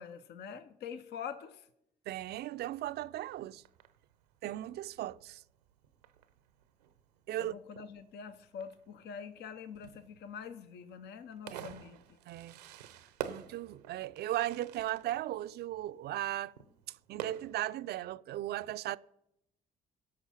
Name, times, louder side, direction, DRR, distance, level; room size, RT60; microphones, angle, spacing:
voice 1, 0.0-1.7 7.4-12.0, left 7 dB, 60° left, 0.8 m, -45 dB
voice 2, 2.1-3.6 4.4-5.4 7.3-7.5 11.5-11.8 12.3-12.6 13.3-16.5 17.1-19.0, right 14 dB, 55° right, 0.4 m, -37 dB
Fireworks, 2.9-17.9, right 10 dB, 90° right, 0.7 m, -50 dB
18.0 x 6.2 x 5.6 m
hypercardioid pair, 55°, 20 cm